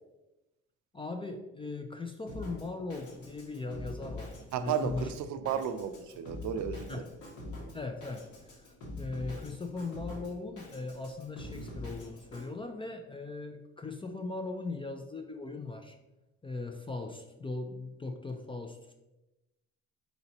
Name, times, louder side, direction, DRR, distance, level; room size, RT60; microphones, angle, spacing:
voice 1, 0.9-5.1 5.4-5.6 6.9-7.1 7.7-8.3 9.0-16.0 16.4-18.9, left 3 dB, 20° left, 5 dB, 0.3 m, -39 dB
Drum kit, 2.3-12.5, left 2 dB, 75° left, 1.4 m, -44 dB
voice 2, 4.5-7.0 7.6-7.7, right 8 dB, 70° right, 10 dB, 0.5 m, -34 dB
4.1 x 4.0 x 2.9 m, 0.99 s
cardioid pair, 90°, 30 cm